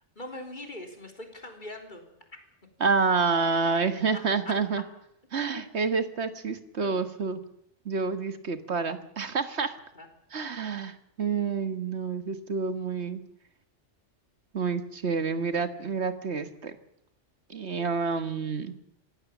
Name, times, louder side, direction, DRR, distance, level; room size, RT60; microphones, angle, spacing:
voice 1, 0.2-2.0 4.4-4.5 5.5-5.6 6.8-7.1 9.9-10.1, left 1 dB, 40° left, 4 dB, 4.0 m, -41 dB
voice 2, 2.8-4.8 5.3-7.4 7.9-9.7 10.3-13.2 14.5-16.7 17.5-18.7, right 5 dB, 65° right, 10 dB, 1.8 m, -28 dB
25.5 x 17.5 x 7.3 m, 0.74 s
omnidirectional pair, 1.2 m